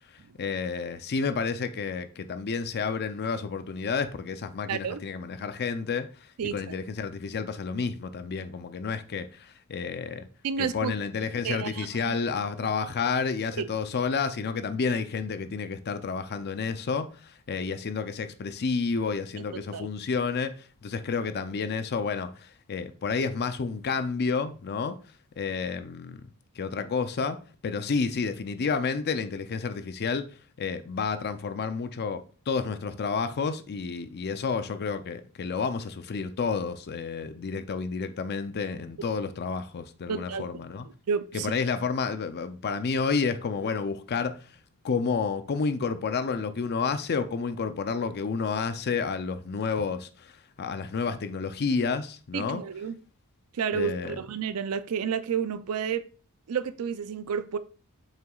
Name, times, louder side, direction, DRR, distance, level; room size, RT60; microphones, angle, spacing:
voice 1, 0.4-6.1 6.5-10.2 10.6-24.9 25.4-26.2 26.6-27.4 27.6-30.2 30.6-40.9 41.3-44.3 44.8-50.3 50.6-52.6 53.7-54.2, left 5 dB, 45° left, 0.5 m, -30 dB
voice 2, 4.7-5.0 6.4-6.6 10.4-10.9 11.4-12.1 19.4-19.9 40.1-40.5 41.1-41.5 52.3-53.0 53.5-56.0 56.5-57.6, right 7 dB, 75° right, 0.4 m, -31 dB
7.4 x 5.8 x 2.3 m
head